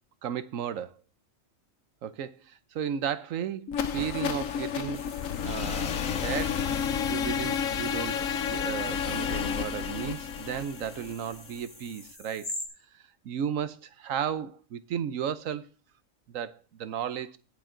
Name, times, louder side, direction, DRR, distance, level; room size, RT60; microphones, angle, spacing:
voice 1, 0.2-0.9 2.0-5.0 5.4-6.6 7.1-12.5 12.9-15.7 16.3-17.4, right 8 dB, 80° right, 1.1 m, -34 dB
sound 1, 3.7-11.6, left 7 dB, 80° left, 1.3 m, -31 dB
sound 2, 4.9-12.7, left 1 dB, 50° left, 3.5 m, -46 dB
18.0 x 7.3 x 3.8 m
omnidirectional pair, 1.4 m